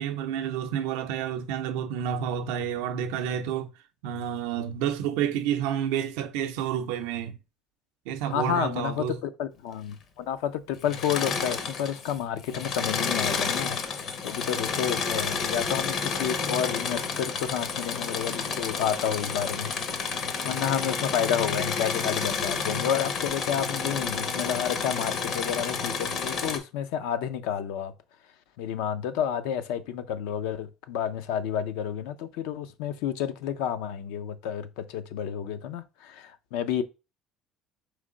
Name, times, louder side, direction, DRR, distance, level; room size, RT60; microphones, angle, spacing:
voice 1, 0.0-3.7 4.0-7.4 8.1-9.2, right 9 dB, 90° right, 0.5 m, -29 dB
voice 2, 8.2-19.7 20.0-20.1 20.4-27.9 28.6-36.8, left 9 dB, 85° left, 0.4 m, -30 dB
Engine / Mechanisms, 10.8-12.1 12.4-26.6, left 5 dB, 55° left, 0.7 m, -30 dB
3.7 x 3.2 x 3.8 m
cardioid pair, 115°, 0 cm